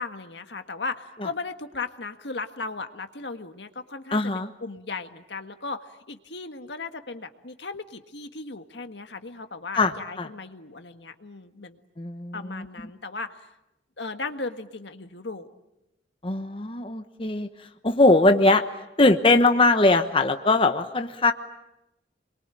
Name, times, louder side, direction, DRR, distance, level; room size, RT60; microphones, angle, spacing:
voice 1, 0.0-11.8 12.3-13.5 14.0-15.5, left 3 dB, 75° left, 7 dB, 1.7 m, -36 dB
voice 2, 4.1-4.5 9.8-10.3 12.0-12.7 16.2-17.5 17.8-18.6 19.0-21.3, left 2 dB, 30° left, 7 dB, 1.1 m, -21 dB
28.5 x 22.5 x 9.1 m, 0.90 s
head